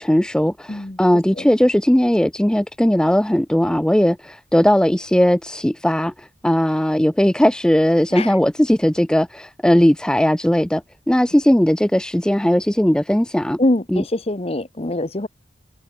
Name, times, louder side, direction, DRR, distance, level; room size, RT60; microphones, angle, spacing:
voice 1, 0.0-13.6 13.9-14.0, equal, 5° left, 0.4 m, -18 dB
voice 2, 0.7-1.0 1.4-1.5 8.1-8.3 13.6-15.3, left 1 dB, 35° left, 1.0 m, -23 dB
head